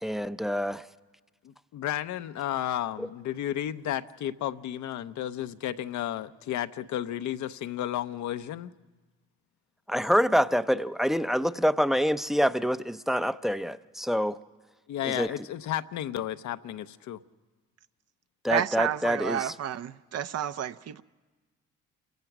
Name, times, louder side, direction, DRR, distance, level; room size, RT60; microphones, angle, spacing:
voice 1, 0.0-0.8 3.0-3.1 9.9-14.4 15.0-15.3 18.4-19.5, equal, ahead, 0.6 m, -26 dB
voice 2, 1.4-8.7 14.9-17.2, left 11 dB, 65° left, 0.7 m, -33 dB
voice 3, 18.5-21.0, right 9 dB, 50° right, 0.7 m, -30 dB
28.0 x 16.0 x 6.0 m
supercardioid pair, 65°, 32 cm